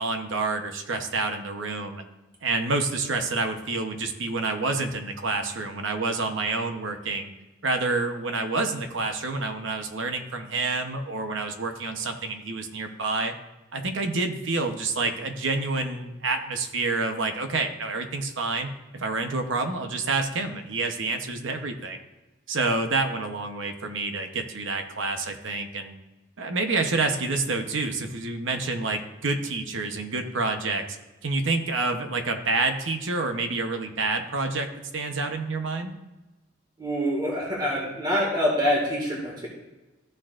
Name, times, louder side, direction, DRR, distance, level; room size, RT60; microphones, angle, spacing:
voice 1, 0.0-2.0 2.4-7.3 7.6-13.3 13.7-22.0 22.5-25.9 26.4-30.8 31.2-35.9, right 3 dB, 65° right, 5 dB, 0.9 m, -28 dB
voice 2, 36.8-39.5, equal, 20° right, -3 dB, 2.0 m, -25 dB
14.0 x 6.1 x 2.5 m, 1.1 s
head